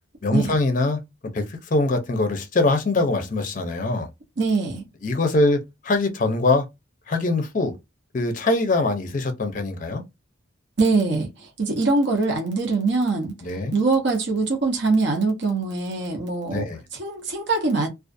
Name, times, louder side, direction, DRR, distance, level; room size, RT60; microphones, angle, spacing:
voice 1, 0.2-4.1 5.0-6.7 7.1-7.8 8.1-10.0 13.4-13.7 16.5-16.8, left 2 dB, 40° left, 0.5 m, -23 dB
voice 2, 4.4-4.8 10.8-13.3 13.7-16.6 17.0-17.9, right 3 dB, 55° right, 0.7 m, -23 dB
2.4 x 2.3 x 2.5 m
head